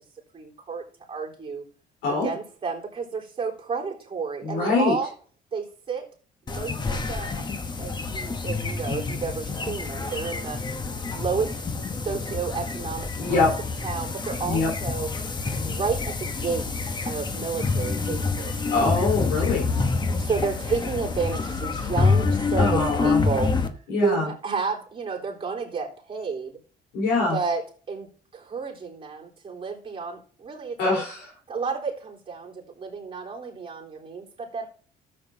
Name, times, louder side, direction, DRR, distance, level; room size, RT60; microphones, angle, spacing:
voice 1, 0.3-1.6 2.1-5.1 5.5-6.1 6.4-7.3 7.8-10.6 11.1-11.5 11.9-13.4 13.8-15.1 15.6-16.7 17.1-18.6 20.2-26.6 27.3-27.6 27.9-31.1 31.5-34.7, right 5 dB, 30° right, -2 dB, 3.6 m, -31 dB
voice 2, 4.4-4.9 13.2-13.5 14.4-14.7 18.7-19.6 22.6-23.2 23.9-24.3 26.9-27.4 30.8-31.2, left 3 dB, 85° left, -2 dB, 4.0 m, -23 dB
sound 1, 6.5-23.7, left 4 dB, 25° left, 1.0 m, -27 dB
13.5 x 7.7 x 2.8 m, 0.42 s
cardioid pair, 110°, 17 cm